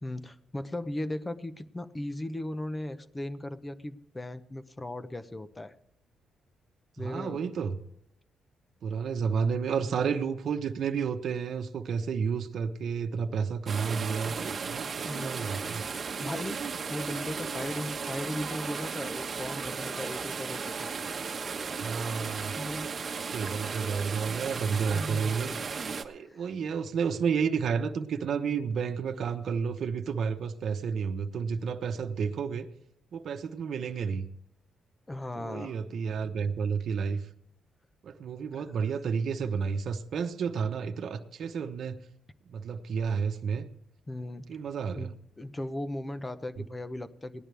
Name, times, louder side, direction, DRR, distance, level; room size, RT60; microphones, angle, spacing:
voice 1, 0.0-5.7 7.0-7.4 9.6-9.9 15.0-15.4 16.2-20.9 22.6-22.9 23.7-24.3 24.9-25.3 26.2-26.4 35.1-35.8 38.6-38.7 44.1-44.5 45.0-47.4, left 1 dB, 15° left, 10 dB, 0.9 m, -37 dB
voice 2, 7.0-7.8 8.8-15.8 21.8-22.6 23.3-25.5 26.0-32.7 33.1-34.3 35.3-37.3 38.0-42.0 42.4-43.7 44.5-45.1, right 6 dB, 60° right, 5 dB, 1.0 m, -31 dB
sound 1, 13.7-26.0, right 5 dB, 40° right, 1.2 m, -35 dB
18.0 x 11.0 x 3.4 m, 0.72 s
cardioid pair, 110°, 0 cm